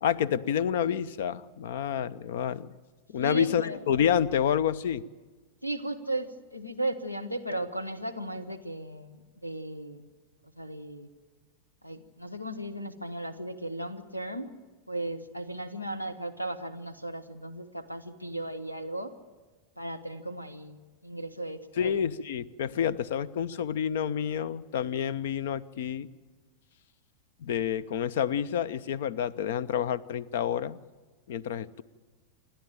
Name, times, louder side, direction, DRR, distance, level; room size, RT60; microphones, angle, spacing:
voice 1, 0.0-2.7 3.1-5.0 21.8-26.1 27.4-30.8 31.3-31.8, left 8 dB, 55° left, 21 dB, 0.6 m, -28 dB
voice 2, 3.2-3.8 5.6-10.0 10.6-11.1 11.8-14.5 14.9-19.1 19.8-20.8 21.0-22.0, right 1 dB, 90° left, 12 dB, 1.1 m, -36 dB
28.0 x 11.5 x 9.0 m, 1.3 s
figure-of-eight pair, 90°, 0 cm